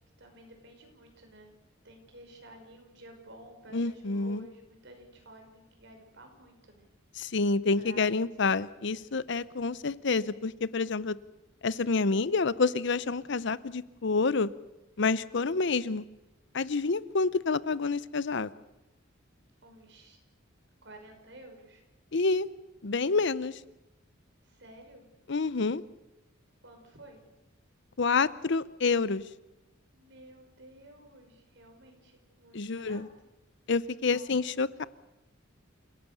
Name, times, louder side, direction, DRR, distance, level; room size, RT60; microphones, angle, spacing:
voice 1, 0.2-1.5 1.8-6.9 7.8-8.3 19.6-20.2 20.8-21.8 24.4-25.1 26.6-27.2 29.9-33.1 34.0-34.3, right 1 dB, 60° right, 4 dB, 5.5 m, -52 dB
voice 2, 3.7-4.5 7.2-11.2 11.6-14.5 15.0-16.0 16.5-18.5 22.1-22.5 22.8-23.6 25.3-25.8 28.0-29.2 32.5-33.1 33.7-34.8, left 4 dB, 60° left, 17 dB, 0.7 m, -28 dB
29.0 x 17.0 x 6.8 m, 1.0 s
head